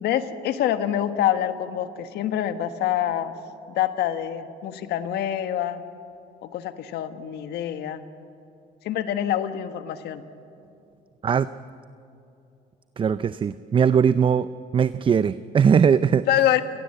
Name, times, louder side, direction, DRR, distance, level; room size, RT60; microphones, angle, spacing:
voice 1, 0.0-3.3 3.7-5.8 6.4-8.0 8.8-10.2 16.3-16.6, left 11 dB, 75° left, 9 dB, 1.4 m, -26 dB
voice 2, 13.0-14.5 14.7-16.3, right 7 dB, 30° right, 14 dB, 0.5 m, -20 dB
30.0 x 18.5 x 7.8 m, 2.7 s
cardioid pair, 110°, 17 cm